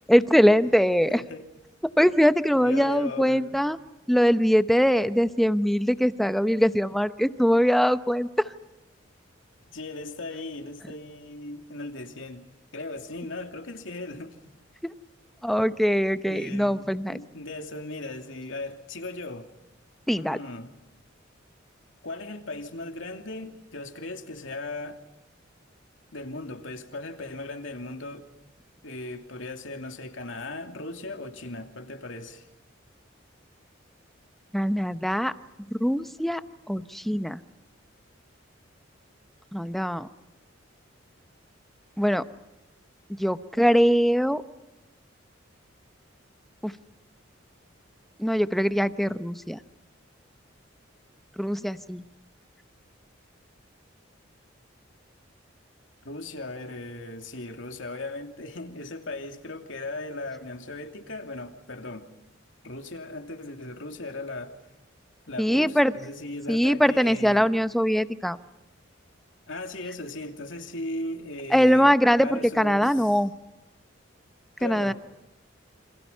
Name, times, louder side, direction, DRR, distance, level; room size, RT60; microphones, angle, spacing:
voice 1, 0.1-1.2 2.0-3.8 4.1-8.3 15.4-17.2 20.1-20.4 34.5-35.3 35.8-36.4 36.7-37.4 39.5-40.1 42.0-42.2 43.2-44.4 46.6-46.7 48.2-49.6 51.4-52.0 65.4-65.9 66.5-68.4 71.5-73.3 74.6-74.9, equal, ahead, 11 dB, 0.8 m, -22 dB
voice 2, 0.9-1.5 2.5-3.5 9.7-12.4 12.7-14.4 16.3-19.5 20.2-20.7 22.0-25.0 26.1-28.3 28.8-32.5 56.0-62.1 62.6-64.5 65.3-67.6 69.5-71.9 72.2-73.2 74.6-74.9, left 2 dB, 75° left, 5 dB, 2.8 m, -37 dB
29.0 x 26.5 x 5.6 m, 1.0 s
head